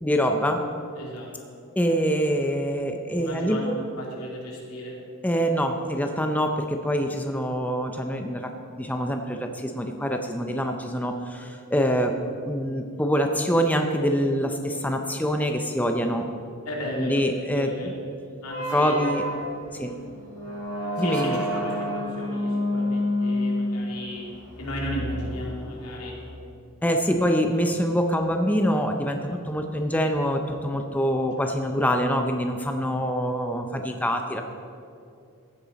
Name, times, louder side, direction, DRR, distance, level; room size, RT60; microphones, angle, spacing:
voice 1, 0.0-0.6 1.8-3.8 5.2-12.2 12.5-16.3 17.0-17.9 18.7-19.3 19.7-19.9 21.0-21.4 26.8-34.4, equal, 5° left, 4 dB, 0.5 m, -25 dB
voice 2, 1.0-1.6 3.1-4.9 16.6-18.0 18.4-19.2 19.7-20.0 21.0-24.3 24.6-26.4 27.1-27.2 31.4-31.6, equal, 90° left, -2 dB, 2.7 m, -35 dB
sound 1, 18.5-26.2, left 1 dB, 60° left, 3.1 m, -29 dB
15.0 x 8.9 x 4.1 m, 2.5 s
head